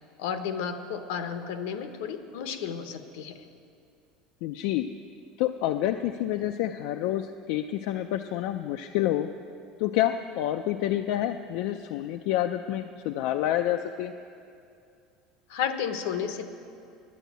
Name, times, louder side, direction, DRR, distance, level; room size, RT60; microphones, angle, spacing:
voice 1, 0.2-3.4 15.5-16.5, left 7 dB, 85° left, 8 dB, 1.0 m, -32 dB
voice 2, 4.4-4.9 5.4-9.3 9.8-14.1, left 12 dB, 65° left, 7 dB, 0.4 m, -28 dB
11.0 x 10.0 x 9.3 m, 2.5 s
cardioid pair, 165°, 0 cm